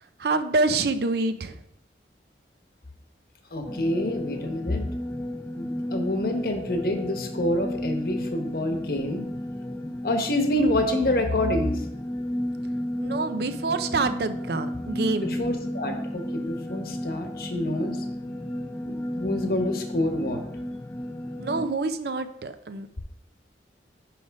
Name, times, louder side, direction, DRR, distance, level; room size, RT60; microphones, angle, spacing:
voice 1, 0.2-1.6 13.0-15.4 21.4-23.0, right 3 dB, 65° right, 11 dB, 0.5 m, -27 dB
voice 2, 3.5-4.8 5.5-9.2 10.0-11.8 15.2-18.0 18.8-20.4, left 1 dB, 55° left, 5 dB, 1.0 m, -27 dB
sound 1, 3.6-21.7, left 1 dB, 10° left, 0.4 m, -33 dB
5.9 x 5.1 x 5.1 m, 0.74 s
head